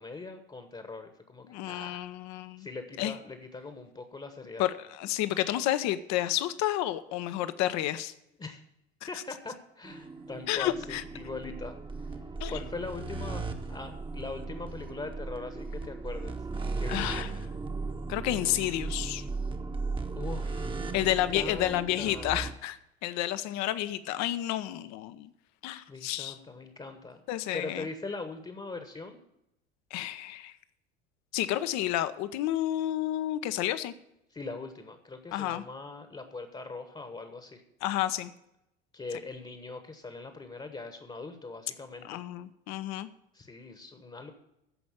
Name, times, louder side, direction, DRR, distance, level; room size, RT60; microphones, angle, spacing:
voice 1, 0.0-2.0 2.6-4.7 8.4-8.6 9.1-12.2 12.5-13.4 13.7-16.4 16.8-17.3 20.1-22.5 25.9-27.2 27.5-29.2 34.3-37.6 38.9-42.2 43.3-44.3, left 3 dB, 15° left, 7 dB, 1.2 m, -41 dB
voice 2, 1.5-2.7 3.0-3.1 4.6-8.1 10.5-11.0 12.4-12.6 16.9-17.3 18.1-19.2 20.9-25.3 25.6-26.4 27.3-27.9 29.9-30.5 31.3-33.9 35.3-35.6 37.8-38.3 42.0-43.1, left 13 dB, 50° left, 12 dB, 0.8 m, -30 dB
sound 1, 9.8-22.5, right 3 dB, 15° right, 1.1 m, -36 dB
14.0 x 5.2 x 7.2 m, 0.85 s
figure-of-eight pair, 70°, 36 cm